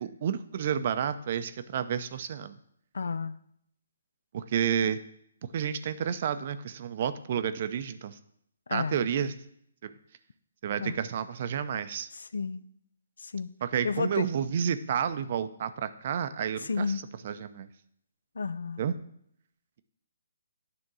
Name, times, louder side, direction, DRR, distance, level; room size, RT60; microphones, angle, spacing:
voice 1, 0.0-2.6 4.3-5.0 5.5-8.2 8.7-9.3 9.8-9.9 10.6-12.1 13.6-16.9 17.2-17.7 18.8-18.9, right 8 dB, 45° right, 12 dB, 0.6 m, -30 dB
voice 2, 2.9-3.4 8.7-9.0 10.8-11.0 12.1-12.6 13.2-13.5 13.8-14.2 16.6-17.0 18.4-18.8, left 5 dB, 75° left, 16 dB, 0.4 m, -32 dB
9.7 x 3.6 x 6.2 m, 0.71 s
hypercardioid pair, 145°, 0 cm